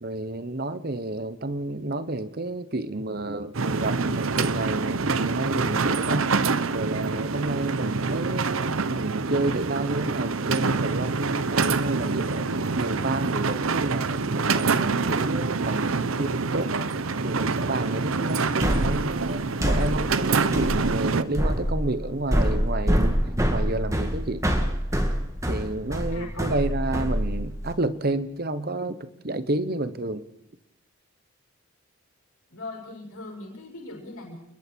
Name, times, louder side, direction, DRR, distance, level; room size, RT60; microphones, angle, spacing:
voice 1, 0.0-6.4 6.7-12.5 12.8-23.2 23.5-24.4 25.5-30.2, right 2 dB, 45° right, 12 dB, 1.1 m, -30 dB
sound 1, 3.5-21.2, right 4 dB, 75° right, 0.9 m, -26 dB
sound 2, 18.6-27.7, equal, 15° right, 2.0 m, -26 dB
voice 2, 26.1-26.4 32.5-34.4, left 2 dB, 90° left, 0 dB, 6.7 m, -40 dB
28.5 x 21.0 x 4.6 m, 0.84 s
head